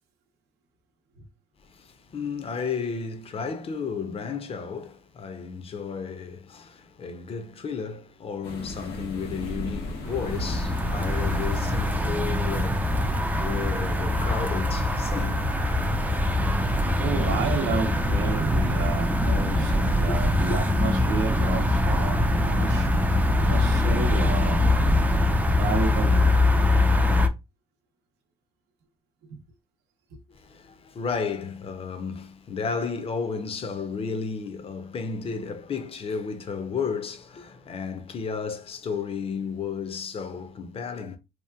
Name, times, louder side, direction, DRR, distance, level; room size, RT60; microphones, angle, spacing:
voice 1, 1.6-16.5 19.4-20.2 20.5-20.6 30.3-41.2, left 5 dB, 35° left, 0.6 m, -33 dB
sound 1, 8.4-17.0, left 1 dB, 85° left, 0.9 m, -36 dB
sound 2, 10.0-27.3, left 1 dB, 10° right, 0.4 m, -23 dB
voice 2, 17.0-22.9 23.4-24.6 25.6-26.4 29.3-29.4, right 4 dB, 80° right, 0.7 m, -31 dB
2.9 x 2.3 x 2.3 m
cardioid pair, 110°, 17 cm